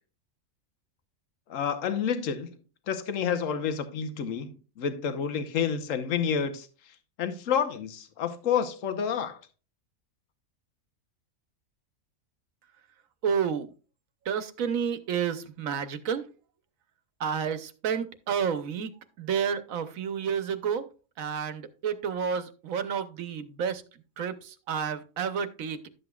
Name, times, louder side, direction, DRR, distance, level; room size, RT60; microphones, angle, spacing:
voice 1, 1.5-2.5 2.9-6.7 7.2-9.4, left 7 dB, 70° left, 1.3 m, -29 dB
voice 2, 13.2-13.7 14.3-16.2 17.2-18.9 19.2-20.8 21.2-23.8 24.2-24.3 24.7-25.9, right 7 dB, 75° right, 1.2 m, -30 dB
12.0 x 7.7 x 2.3 m
omnidirectional pair, 1.4 m